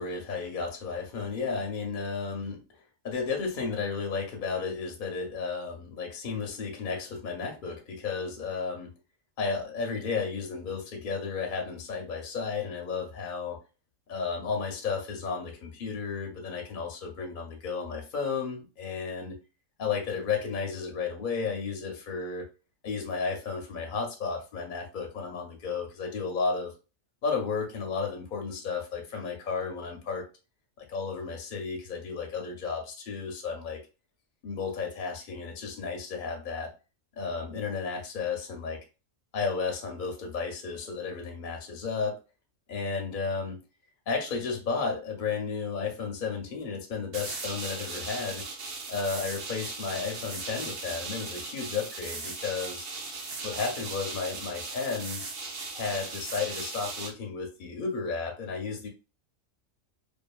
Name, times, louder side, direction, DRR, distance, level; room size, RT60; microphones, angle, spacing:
voice 1, 0.0-2.6 3.0-8.9 9.4-13.6 14.1-19.4 19.8-22.5 22.8-26.7 27.2-30.2 30.8-33.8 34.4-36.7 37.2-38.8 39.3-42.2 42.7-43.6 44.1-48.4 48.9-52.9 53.4-55.2 55.7-58.9, left 5 dB, 50° left, 2 dB, 0.6 m, -33 dB
sound 1, 47.1-57.1, right 3 dB, 60° right, 0.7 m, -38 dB
2.6 x 2.5 x 2.2 m, 0.31 s
omnidirectional pair, 1.4 m